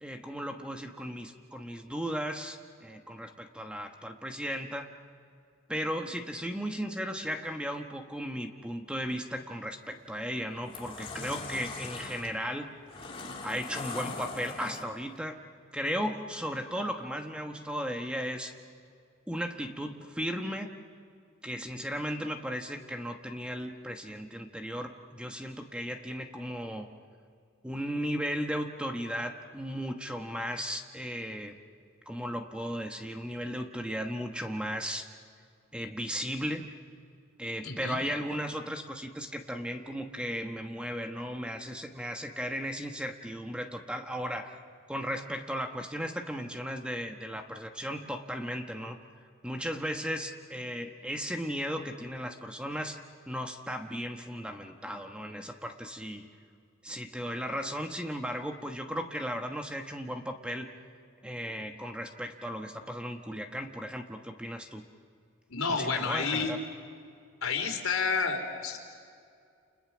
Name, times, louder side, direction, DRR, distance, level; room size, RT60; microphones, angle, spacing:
voice 1, 0.0-4.9 5.7-12.7 13.4-15.4 15.7-18.5 19.3-20.8 21.4-26.9 27.6-31.5 32.1-35.1 35.7-36.8 37.4-44.6 44.9-49.0 49.4-53.0 53.3-56.3 56.8-60.7 61.2-64.8 65.7-66.6, equal, 5° right, 4 dB, 1.2 m, -36 dB
sound 1, 9.8-10.0 10.5-15.2, left 3 dB, 25° left, 2.3 m, -41 dB
voice 2, 37.6-38.0 65.5-66.6 67.4-68.8, left 5 dB, 80° left, 3 dB, 3.7 m, -30 dB
30.0 x 29.0 x 6.2 m, 2.3 s
head